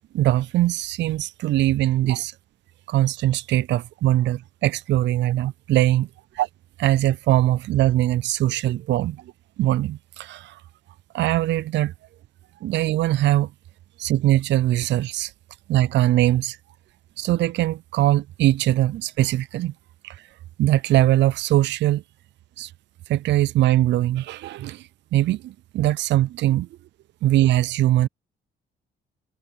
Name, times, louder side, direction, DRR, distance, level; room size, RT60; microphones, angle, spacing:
voice 1, 0.1-2.3 2.9-6.1 6.4-6.5 6.8-9.2 9.6-10.6 11.1-11.9 12.6-13.5 14.0-15.3 15.7-16.6 17.2-19.7 20.0-20.2 20.6-22.0 22.6-22.7 23.1-24.8 25.1-26.7 27.2-28.1, right 14 dB, 65° right, 0.4 m, -21 dB
cardioid pair, 90°, 20 cm